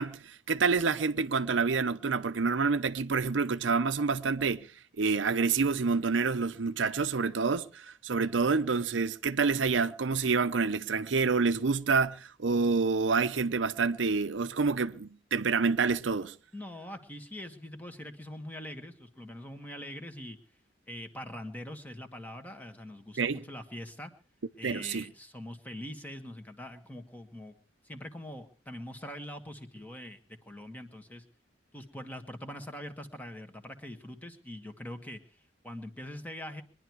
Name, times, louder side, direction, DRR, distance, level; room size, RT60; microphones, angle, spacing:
voice 1, 0.0-4.7 5.0-16.3 23.2-23.4 24.6-25.0, right 4 dB, 85° right, 0.7 m, -28 dB
voice 2, 16.5-20.4 20.9-24.1 24.6-27.5 27.8-31.2 31.7-36.6, left 1 dB, 10° left, 1.5 m, -43 dB
22.5 x 10.5 x 4.6 m
head